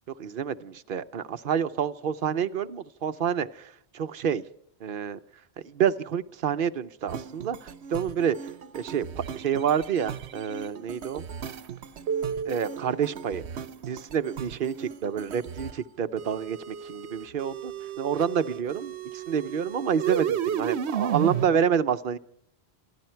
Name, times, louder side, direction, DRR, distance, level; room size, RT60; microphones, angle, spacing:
voice 1, 0.2-4.4 4.8-5.2 5.6-8.4 8.7-11.2 12.5-13.4 13.9-17.7 18.0-22.2, right 8 dB, 60° right, 10 dB, 0.9 m, -28 dB
sound 1, 7.1-15.8 16.2-21.5, right 8 dB, 90° right, 1.0 m, -34 dB
27.0 x 11.5 x 4.5 m, 0.71 s
omnidirectional pair, 1.1 m